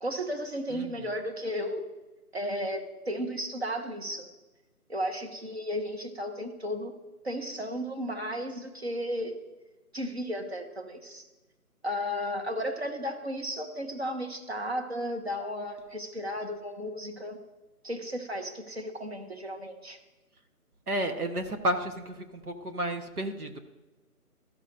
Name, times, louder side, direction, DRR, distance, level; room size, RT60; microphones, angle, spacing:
voice 1, 0.0-1.8 2.3-4.3 4.9-6.9 7.2-9.3 9.9-11.3 11.8-17.4 17.8-20.0, equal, 45° right, 4 dB, 1.1 m, -34 dB
voice 2, 20.9-23.6, right 1 dB, 75° right, 7 dB, 1.3 m, -32 dB
13.5 x 6.0 x 2.6 m, 1.1 s
figure-of-eight pair, 175°, 46 cm